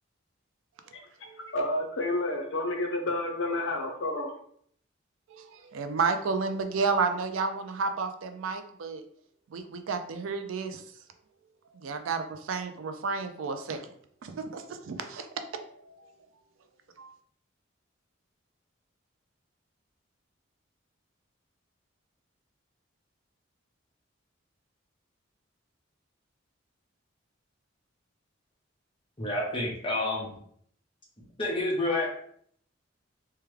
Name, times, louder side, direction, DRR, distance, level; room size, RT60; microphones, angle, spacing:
voice 1, 1.5-4.3, left 2 dB, 70° left, 2 dB, 0.7 m, -30 dB
voice 2, 5.3-9.0 9.5-10.8 11.7-13.8 14.2-15.3 15.5-16.1 17.0-17.1, right 4 dB, 90° right, 8 dB, 0.4 m, -31 dB
voice 3, 29.2-30.4 31.4-32.1, left 2 dB, 25° left, -3 dB, 0.9 m, -29 dB
3.4 x 2.2 x 3.2 m, 0.64 s
head